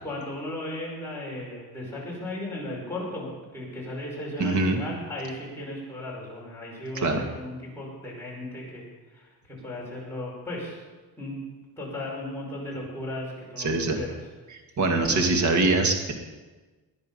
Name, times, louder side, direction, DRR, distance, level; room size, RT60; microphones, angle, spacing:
voice 1, 0.0-10.8 11.2-11.4 11.8-14.2, left 1 dB, 5° left, -5 dB, 5.4 m, -36 dB
voice 2, 4.4-4.8 7.0-7.2 13.6-14.0 14.5-16.1, right 3 dB, 45° right, 4 dB, 2.1 m, -23 dB
20.0 x 10.5 x 5.5 m, 1.3 s
cardioid pair, 165°, 40 cm